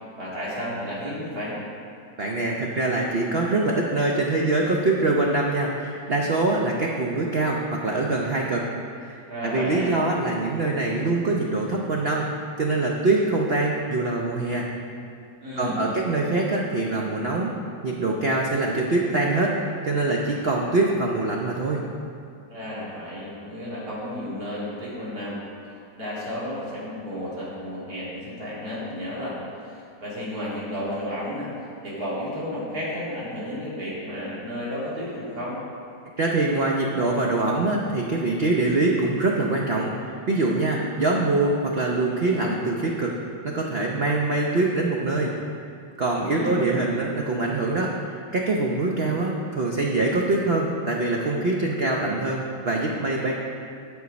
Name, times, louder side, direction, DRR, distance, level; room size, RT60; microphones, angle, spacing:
voice 1, 0.2-1.6 9.3-9.9 15.4-16.0 22.5-25.4 26.0-35.6 46.3-46.7, left 1 dB, 50° right, -8 dB, 3.1 m, -32 dB
voice 2, 2.2-8.6 9.0-12.3 12.6-14.7 15.6-17.5 17.8-21.8 36.2-43.1 43.4-45.3 46.0-53.3, right 2 dB, 85° right, -1 dB, 0.5 m, -24 dB
9.6 x 6.3 x 5.2 m, 2.4 s
omnidirectional pair, 2.1 m